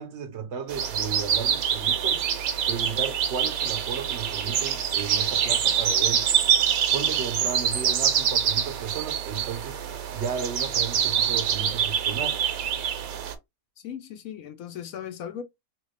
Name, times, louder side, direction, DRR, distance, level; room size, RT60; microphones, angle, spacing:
voice 1, 0.0-2.2 2.7-6.3 6.9-9.8 10.1-12.4, right 6 dB, 65° right, 0.7 m, -34 dB
sound 1, 0.7-13.3, right 8 dB, 85° right, 1.1 m, -25 dB
voice 2, 13.8-15.4, left 9 dB, 75° left, 1.1 m, -37 dB
2.9 x 2.8 x 3.1 m
omnidirectional pair, 1.5 m